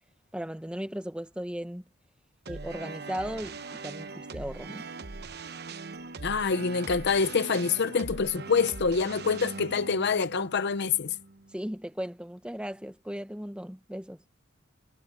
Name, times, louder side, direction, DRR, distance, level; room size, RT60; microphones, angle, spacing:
voice 1, 0.3-1.8 2.5-4.9 11.5-14.2, equal, 5° right, 1.2 m, -37 dB
sound 1, 2.5-11.6, right 3 dB, 50° right, 1.0 m, -41 dB
voice 2, 6.2-11.2, left 5 dB, 55° left, 0.6 m, -26 dB
head